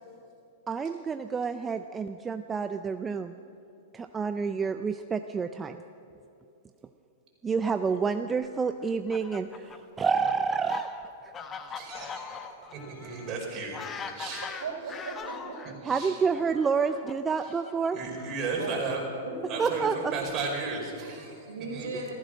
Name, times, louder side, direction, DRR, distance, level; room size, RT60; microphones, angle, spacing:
voice 1, 0.7-3.3 3.9-5.8 7.4-10.9 11.2-11.3 15.9-18.0 19.6-20.0, right 5 dB, 20° right, 9 dB, 0.5 m, -29 dB
Fowl, 8.8-15.7 16.5-18.6, left 6 dB, 25° left, 1.1 m, -41 dB
voice 2, 11.7-13.8 14.1-14.4 15.8-16.2 17.4-17.5 17.9-19.0 19.5-22.1, right 4 dB, 35° right, -1 dB, 4.9 m, -35 dB
voice 3, 14.4-15.9 16.2-16.3 18.6-18.8 19.2-20.1 21.5-22.1, right 3 dB, 80° right, 2 dB, 3.6 m, -38 dB
15.0 x 15.0 x 6.3 m, 2.8 s
hypercardioid pair, 120°, 0 cm